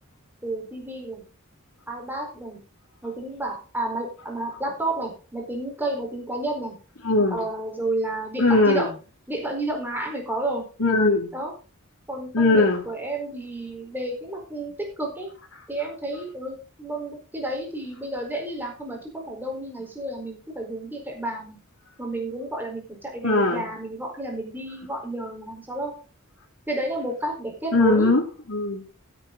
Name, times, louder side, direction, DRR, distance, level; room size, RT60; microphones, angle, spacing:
voice 1, 0.4-1.2 1.9-2.6 3.0-6.8 7.3-8.9 9.3-10.6 11.3-11.5 12.1-15.3 15.7-21.6 22.0-25.9 26.7-28.1, right 1 dB, 10° right, 0 dB, 4.4 m, -31 dB
voice 2, 7.0-7.4 8.4-8.9 10.8-11.3 12.3-12.8 23.2-23.7 27.7-28.8, left 2 dB, 70° left, 1 dB, 2.4 m, -20 dB
16.5 x 7.8 x 3.9 m, 0.35 s
head